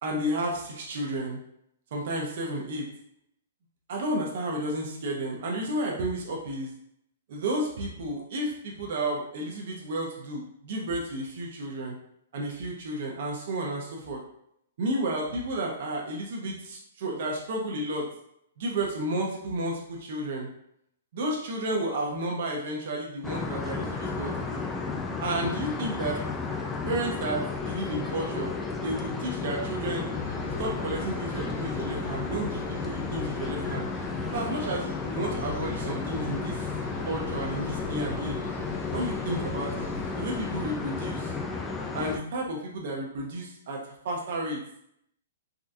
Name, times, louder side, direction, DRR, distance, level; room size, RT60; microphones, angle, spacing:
voice 1, 0.0-1.4 1.9-2.9 3.9-6.7 7.3-11.9 12.3-14.2 14.8-18.1 18.6-20.5 21.1-24.6 25.2-26.2 26.8-30.0 30.6-33.9 34.3-36.6 37.0-38.4 38.9-39.8 40.1-41.3 41.9-43.8 44.0-44.6, right 1 dB, 55° right, -2 dB, 0.8 m, -32 dB
sound 1, 23.2-42.2, left 4 dB, 10° left, 0.3 m, -33 dB
sound 2, 30.1-40.7, left 3 dB, 80° left, 1.2 m, -40 dB
3.7 x 2.3 x 2.7 m, 0.72 s
hypercardioid pair, 145°, 0 cm